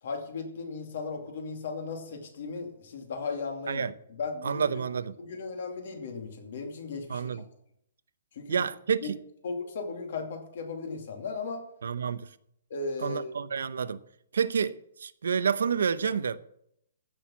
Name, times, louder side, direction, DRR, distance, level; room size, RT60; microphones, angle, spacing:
voice 1, 0.0-3.8 4.1-4.7 5.2-7.4 8.3-8.7 9.0-9.1 9.4-11.6 12.7-13.3, left 4 dB, 45° left, 2.6 m, -36 dB
voice 2, 4.4-5.2 7.1-7.4 8.5-9.2 11.8-12.3 13.0-14.0 14.3-16.4, right 6 dB, 90° right, 0.8 m, -29 dB
15.0 x 6.4 x 7.3 m
hypercardioid pair, 180°, 0 cm